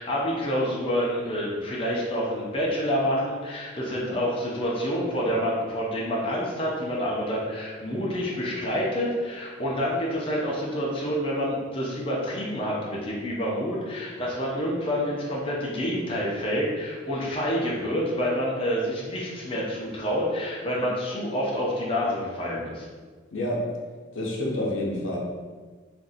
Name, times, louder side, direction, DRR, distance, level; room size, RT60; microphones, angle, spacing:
voice 1, 0.0-22.9, equal, 30° left, -5 dB, 0.6 m, -28 dB
voice 2, 23.3-23.6 24.1-25.2, left 1 dB, 85° left, -3 dB, 0.7 m, -28 dB
2.6 x 2.5 x 4.0 m, 1.4 s
head